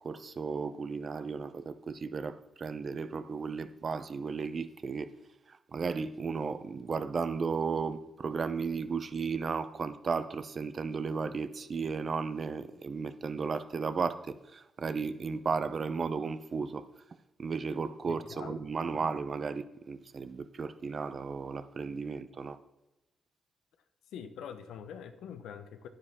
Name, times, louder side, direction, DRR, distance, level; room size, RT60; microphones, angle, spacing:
voice 1, 0.0-5.1 5.5-16.9 17.4-22.6, right 5 dB, 50° right, 0.7 m, -34 dB
voice 2, 18.1-18.6 18.9-19.1 24.1-25.9, left 8 dB, 90° left, 0.9 m, -44 dB
10.0 x 9.7 x 3.6 m
cardioid pair, 80°, 0 cm